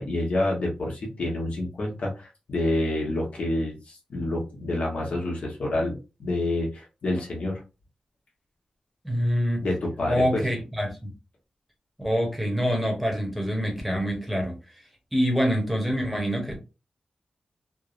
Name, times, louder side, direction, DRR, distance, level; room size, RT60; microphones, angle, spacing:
voice 1, 0.0-7.6 9.6-10.4, left 1 dB, 70° left, 1.0 m, -28 dB
voice 2, 9.0-9.6 10.1-11.1 12.0-14.5 15.1-16.6, equal, ahead, 0.9 m, -25 dB
3.3 x 2.0 x 2.4 m
wide cardioid pair, 110°, 2 cm